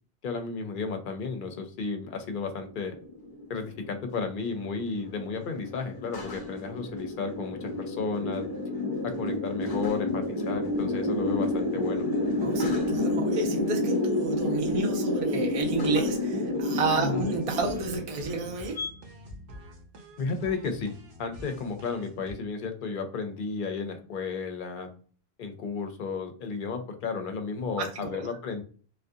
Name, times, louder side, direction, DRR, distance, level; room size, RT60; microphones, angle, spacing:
voice 1, 0.2-2.9 3.5-8.5 9.0-12.1 17.0-17.3 20.2-20.9 21.2-24.9 25.4-28.6, left 4 dB, 60° left, 0.7 m, -33 dB
sound 1, 2.5-18.9, left 2 dB, 30° left, 0.4 m, -30 dB
voice 2, 12.4-18.8 27.8-28.3, right 3 dB, 50° right, 0.4 m, -30 dB
sound 2, 17.0-22.3, left 1 dB, 85° right, 0.9 m, -47 dB
2.4 x 2.2 x 2.6 m
omnidirectional pair, 1.0 m